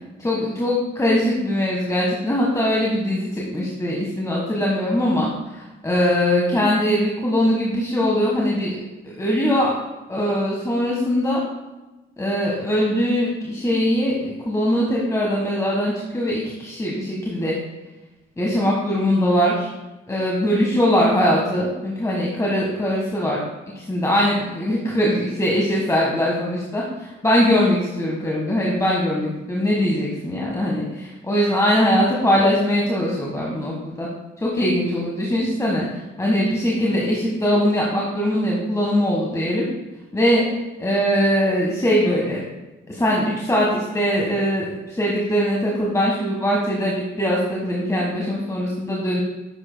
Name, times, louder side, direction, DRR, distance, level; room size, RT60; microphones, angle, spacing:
voice 1, 0.2-8.7 9.0-9.8 10.1-11.4 12.2-17.5 18.4-19.7 20.1-23.4 23.7-34.1 34.4-39.7 40.1-40.4 40.8-42.4 42.9-49.2, equal, 15° left, -4 dB, 1.5 m, -21 dB
10.0 x 7.4 x 2.2 m, 1.1 s
cardioid pair, 90°, 20 cm